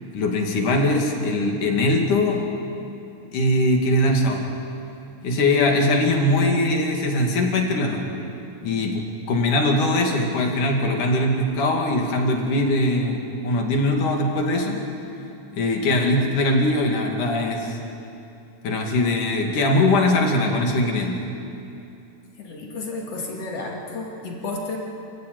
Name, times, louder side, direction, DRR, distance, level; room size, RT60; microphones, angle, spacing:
voice 1, 0.1-2.4 3.3-4.4 5.2-8.1 8.6-14.9 15.5-17.8 18.6-21.2, left 1 dB, 85° left, 1 dB, 4.0 m, -21 dB
voice 2, 22.4-24.8, left 3 dB, 55° left, -1 dB, 3.6 m, -32 dB
27.5 x 16.0 x 9.4 m, 2.8 s
omnidirectional pair, 3.5 m